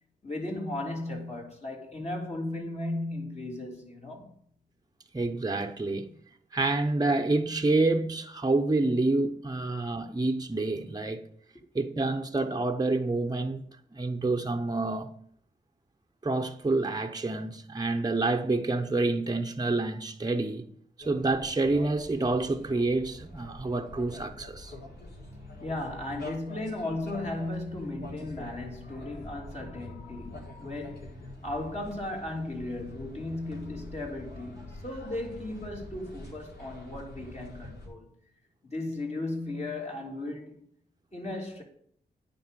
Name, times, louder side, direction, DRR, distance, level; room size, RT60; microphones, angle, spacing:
voice 1, 0.2-4.3 25.6-31.1 31.4-38.1 38.7-40.6 41.1-41.6, left 2 dB, 35° left, 3.2 m, -36 dB
voice 2, 5.1-6.1 6.5-11.3 11.7-13.6 13.9-15.1 16.2-20.6 21.0-24.7, right 2 dB, 20° right, 0.9 m, -28 dB
sound 1, 21.0-37.9, left 1 dB, 65° left, 4.3 m, -46 dB
9.4 x 5.3 x 7.5 m
cardioid pair, 50°, 18 cm